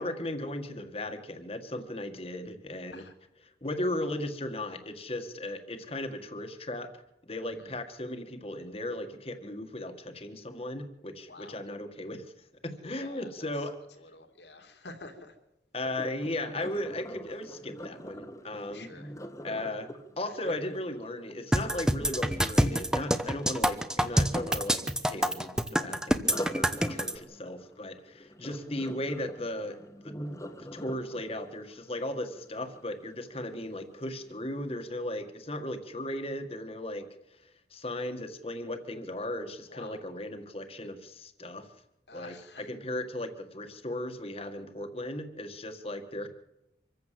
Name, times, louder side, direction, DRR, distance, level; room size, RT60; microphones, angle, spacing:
voice 1, 0.0-3.0 3.6-6.9 7.2-12.3 12.6-13.8 15.7-18.9 19.4-19.9 20.2-30.2 30.7-37.1 37.7-41.7 42.1-46.3, left 1 dB, 30° left, 7 dB, 1.8 m, -36 dB
voice 2, 7.4-7.7 11.3-11.6 12.9-13.3 14.0-15.3 18.7-19.1 20.4-20.5 27.0-27.1 39.7-40.0 42.1-42.7, left 2 dB, 75° left, 6 dB, 2.9 m, -48 dB
Sink (filling or washing), 15.8-21.8 26.2-33.2 33.7-34.0 34.5-34.6, equal, 15° left, 1.4 m, -43 dB
sound 1, 21.5-27.1, equal, 5° right, 1.0 m, -26 dB
25.5 x 15.0 x 7.6 m, 0.92 s
head